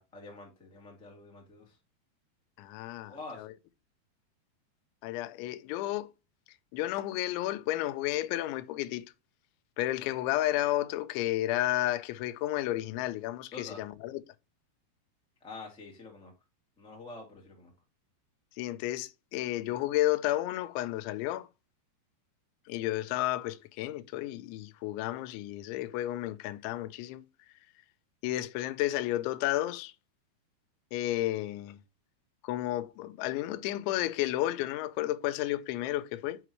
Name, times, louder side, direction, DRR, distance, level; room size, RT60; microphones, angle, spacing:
voice 1, 0.0-1.7 3.1-3.4 13.5-13.8 15.4-16.3 16.8-17.7, left 3 dB, 5° left, 0.7 m, -46 dB
voice 2, 2.6-3.5 5.0-6.1 6.7-9.0 9.8-14.2 18.6-21.5 22.7-27.3 28.2-29.9 30.9-31.8 32.4-36.4, left 15 dB, 90° left, 3.0 m, -32 dB
8.4 x 4.9 x 3.0 m
omnidirectional pair, 5.2 m